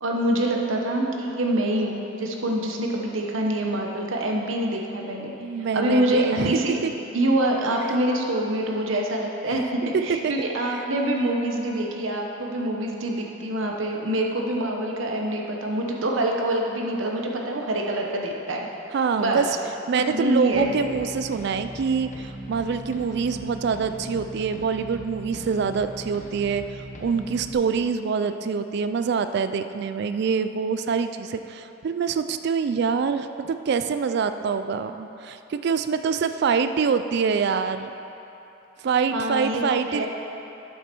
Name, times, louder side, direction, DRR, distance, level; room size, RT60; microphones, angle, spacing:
voice 1, 0.0-5.3 5.7-6.7 7.1-9.6 10.0-18.7 19.2-19.5 19.9-20.8 39.1-40.1, right 1 dB, 85° right, 0 dB, 1.0 m, -25 dB
voice 2, 5.4-6.9 10.2-10.3 10.7-10.8 18.9-19.5 19.9-37.9 38.8-40.1, right 5 dB, 55° right, 10 dB, 0.3 m, -25 dB
sound 1, 20.5-27.5, equal, 40° left, 1.0 m, -40 dB
9.3 x 7.2 x 4.5 m, 2.9 s
head